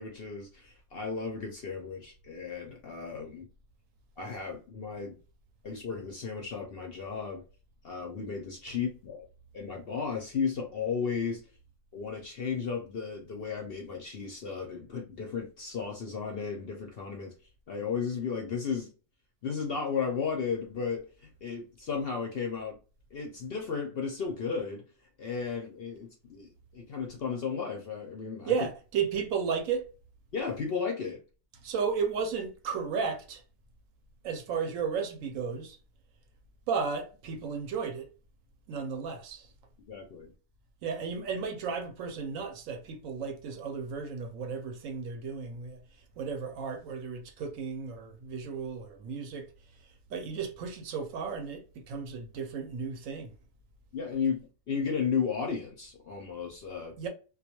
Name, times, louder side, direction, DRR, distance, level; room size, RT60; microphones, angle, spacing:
voice 1, 0.0-3.4 4.2-5.2 5.6-7.4 7.8-9.2 9.5-11.4 11.9-17.3 17.7-18.9 19.4-22.8 23.1-24.8 25.2-28.5 30.3-31.2 39.9-40.3 53.9-54.4 54.7-57.0, left 6 dB, 60° left, 0.6 m, -34 dB
voice 2, 28.5-29.8 31.6-33.4 34.2-35.8 36.7-38.1 38.7-39.5 40.8-49.5 49.7-53.4 57.0-57.1, right 6 dB, 75° right, 1.0 m, -34 dB
2.3 x 2.3 x 2.8 m
omnidirectional pair, 1.4 m